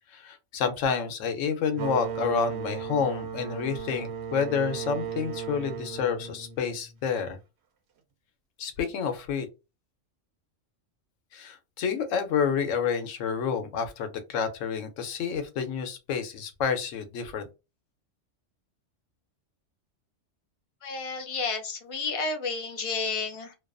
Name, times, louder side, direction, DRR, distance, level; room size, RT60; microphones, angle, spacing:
voice 1, 0.1-7.4 8.6-9.5 11.3-17.5, left 6 dB, 90° left, 1.0 m, -29 dB
sound 1, 1.7-7.2, right 7 dB, 65° right, 0.8 m, -36 dB
voice 2, 20.8-23.5, left 4 dB, 60° left, 0.3 m, -31 dB
2.5 x 2.3 x 2.4 m
omnidirectional pair, 1.3 m